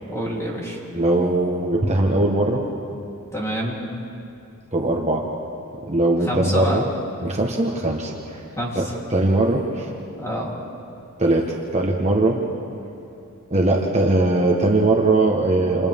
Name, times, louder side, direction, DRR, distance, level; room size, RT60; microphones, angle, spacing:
voice 1, 0.0-0.8 3.3-3.8 6.2-6.9 8.6-9.0 10.2-10.5, equal, 15° left, -3 dB, 3.6 m, -27 dB
voice 2, 0.9-2.6 4.7-5.3 5.9-6.8 7.2-8.4 8.7-8.8 9.1-9.9 11.2-12.4 13.5-15.9, right 2 dB, 30° right, 0 dB, 1.4 m, -20 dB
28.5 x 28.5 x 3.7 m, 2.7 s
head